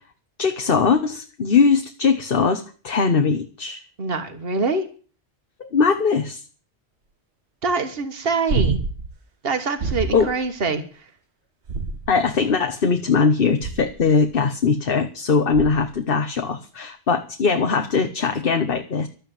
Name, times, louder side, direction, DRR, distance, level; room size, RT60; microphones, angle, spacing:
voice 1, 0.4-3.8 5.6-6.4 10.1-10.3 12.1-19.1, left 5 dB, 60° left, 7 dB, 1.3 m, -20 dB
voice 2, 4.0-4.9 7.6-8.9 9.4-11.1, right 3 dB, 65° right, 7 dB, 1.8 m, -25 dB
sound 1, 8.5-9.1 9.8-10.3 11.6-12.4 13.6-14.1 15.5-16.0 18.3-18.4, right 4 dB, 85° right, 1.7 m, -26 dB
12.5 x 9.0 x 8.9 m, 0.39 s
omnidirectional pair, 1.1 m